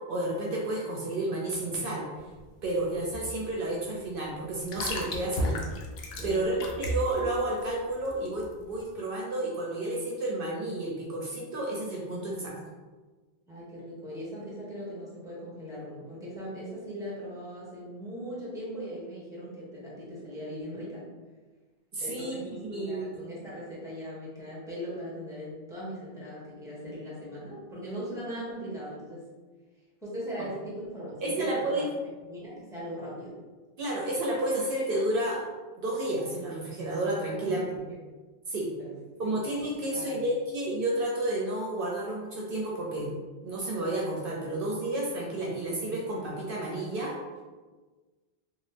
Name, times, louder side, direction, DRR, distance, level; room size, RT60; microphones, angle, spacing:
voice 1, 0.1-2.1 2.6-5.5 6.2-12.5 21.9-22.4 22.7-23.1 31.2-31.9 33.8-35.4 35.8-37.8 38.5-38.7 39.2-43.1 43.4-47.2, right 1 dB, 65° right, -3 dB, 0.7 m, -31 dB
sound 1, 2.1-8.9, left 1 dB, 85° left, 0.8 m, -35 dB
voice 2, 5.2-5.5 6.2-6.8 13.5-21.0 22.0-29.2 30.0-31.9 32.3-33.4 37.3-37.5 38.8-38.9 39.2-40.2, equal, 5° right, -7 dB, 1.0 m, -39 dB
3.0 x 2.3 x 3.2 m, 1.3 s
omnidirectional pair, 1.0 m